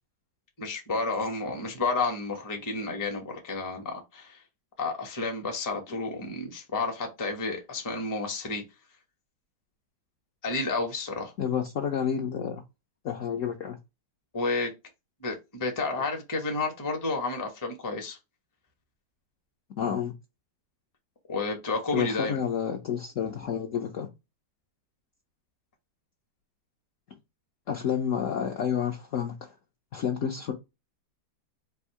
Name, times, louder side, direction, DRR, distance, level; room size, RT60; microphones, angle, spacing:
voice 1, 0.6-4.4 4.8-8.6 10.4-11.3 14.3-14.7 15.2-18.2 21.3-22.4, left 3 dB, 20° left, 0.6 m, -31 dB
voice 2, 11.4-12.6 13.0-13.8 19.8-20.1 21.9-24.1 27.7-29.5 29.9-30.5, left 8 dB, 65° left, 0.8 m, -29 dB
3.5 x 2.6 x 4.6 m
omnidirectional pair, 2.0 m